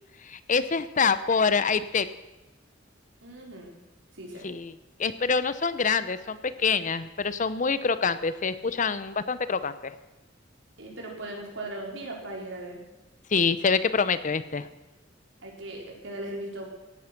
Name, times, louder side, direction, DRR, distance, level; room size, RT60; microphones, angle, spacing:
voice 1, 0.2-2.1 4.4-4.7 5.0-9.9 13.3-14.7, left 5 dB, 45° left, 14 dB, 0.7 m, -26 dB
voice 2, 3.2-3.8 4.1-4.5 10.8-12.8 15.4-16.7, right 1 dB, 85° right, -1 dB, 4.7 m, -38 dB
16.5 x 11.0 x 6.0 m, 1.1 s
head